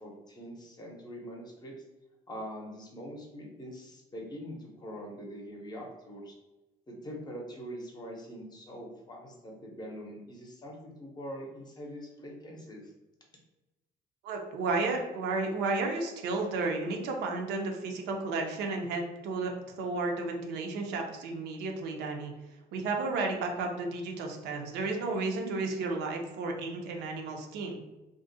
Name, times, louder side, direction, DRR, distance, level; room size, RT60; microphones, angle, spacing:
voice 1, 0.0-1.7 2.3-6.4 6.9-12.8, equal, 25° left, -1 dB, 0.6 m, -43 dB
voice 2, 14.2-19.5 19.8-22.3 22.7-27.8, right 3 dB, 80° right, 2 dB, 0.5 m, -32 dB
2.4 x 2.0 x 2.6 m, 1.0 s
cardioid pair, 110°, 17 cm